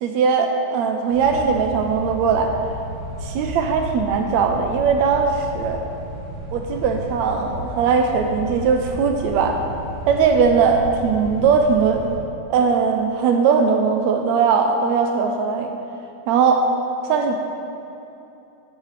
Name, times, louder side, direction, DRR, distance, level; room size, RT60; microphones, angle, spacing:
voice 1, 0.0-2.5 3.2-5.8 6.5-9.6 10.1-12.0 12.5-15.7 16.3-16.7 17.0-17.3, right 5 dB, 75° right, 4 dB, 1.7 m, -19 dB
sound 1, 1.1-12.2, equal, 25° right, 1.9 m, -33 dB
9.8 x 9.3 x 3.3 m, 2.8 s
omnidirectional pair, 3.5 m